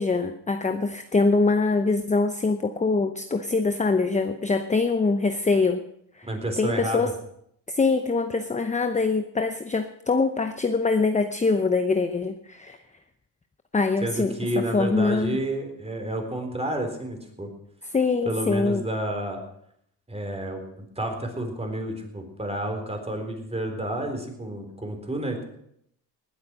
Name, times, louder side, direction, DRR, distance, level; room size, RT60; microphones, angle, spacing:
voice 1, 0.0-5.8 6.2-6.3 6.6-7.1 7.7-12.8 13.7-14.3 14.7-15.4 17.9-18.8, left 3 dB, 15° left, 8 dB, 0.8 m, -23 dB
voice 2, 6.3-7.0 14.0-17.5 18.2-19.4 20.1-25.4, right 1 dB, 15° right, 4 dB, 3.9 m, -30 dB
19.5 x 8.3 x 6.2 m, 0.73 s
cardioid pair, 95°, 42 cm